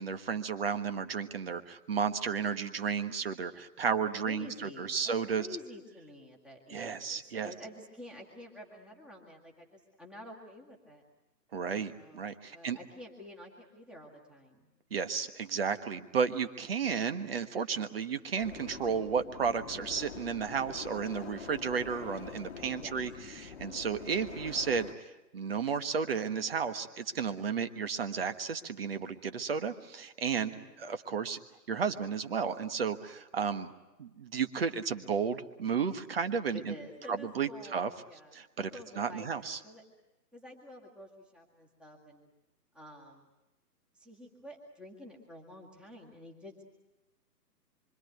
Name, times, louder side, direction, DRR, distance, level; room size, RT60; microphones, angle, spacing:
voice 1, 0.0-5.5 6.7-7.5 11.5-12.8 14.9-25.0 25.3-30.5 30.8-31.4 31.7-33.7 34.0-36.7 37.1-37.9 38.3-39.6, right 6 dB, 35° right, 10 dB, 1.4 m, -33 dB
voice 2, 4.2-11.0 11.9-14.7 22.7-23.0 30.4-30.8 36.5-39.8 40.3-42.3 42.7-43.3 43.9-46.6, left 1 dB, ahead, -1 dB, 1.9 m, -49 dB
sound 1, 18.4-24.9, left 7 dB, 40° left, 1.5 m, -45 dB
26.0 x 25.0 x 9.2 m, 0.99 s
hypercardioid pair, 165°, 49 cm